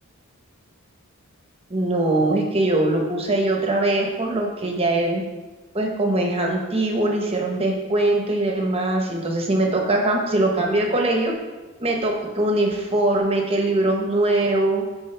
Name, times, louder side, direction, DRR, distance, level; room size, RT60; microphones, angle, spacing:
voice 1, 1.7-5.2 5.7-11.4 11.8-14.8, right 2 dB, 25° right, 1 dB, 1.0 m, -22 dB
10.0 x 4.4 x 3.4 m, 1.2 s
head